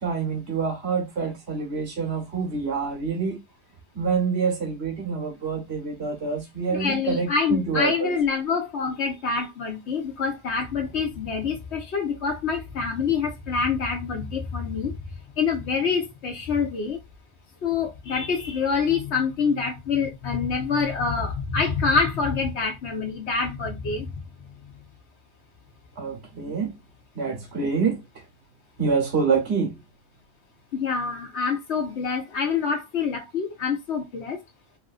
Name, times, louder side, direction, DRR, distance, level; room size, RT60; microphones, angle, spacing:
voice 1, 0.0-3.4 3.9-8.1 26.0-26.8 27.1-28.0 28.8-29.8, right 5 dB, 70° right, 1.4 m, -26 dB
voice 2, 6.7-14.9 15.4-17.0 17.6-24.1 30.7-34.4, left 5 dB, 75° left, 1.2 m, -26 dB
3.4 x 2.5 x 2.4 m
omnidirectional pair, 1.1 m